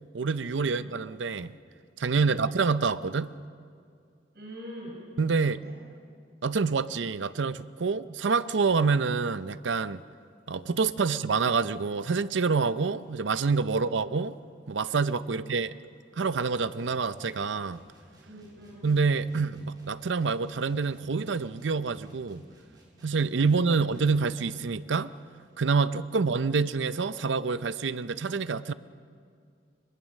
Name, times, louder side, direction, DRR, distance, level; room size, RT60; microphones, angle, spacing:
voice 1, 0.1-1.5 2.0-3.3 5.2-5.6 6.4-10.0 10.5-14.4 14.7-15.7 16.2-17.8 18.8-22.4 23.0-25.1 25.6-28.7, right 4 dB, 90° right, 0.6 m, -27 dB
voice 2, 4.3-5.0 5.4-5.8 11.0-11.2 13.7-13.9 15.3-15.5 18.3-18.9 23.4-24.2 26.1-26.4, equal, 60° right, 5.4 m, -45 dB
sound 1, 16.3-24.8, equal, 25° right, 3.9 m, -56 dB
23.0 x 22.0 x 6.5 m
head